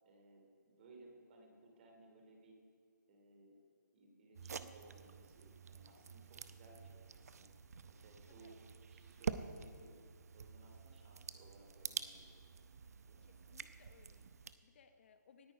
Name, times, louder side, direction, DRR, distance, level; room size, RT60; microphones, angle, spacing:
voice 1, 0.0-2.6 3.1-3.6 3.9-7.5 7.9-8.6 8.9-10.0 10.3-12.3 12.5-13.6, right 2 dB, 30° right, 2 dB, 2.8 m, -62 dB
sound 1, 4.3-14.5, right 6 dB, 55° right, 0.7 m, -48 dB
voice 2, 13.2-15.5, left 6 dB, 35° left, 8 dB, 0.9 m, -66 dB
18.5 x 9.4 x 5.2 m, 2.1 s
figure-of-eight pair, 155°, 10 cm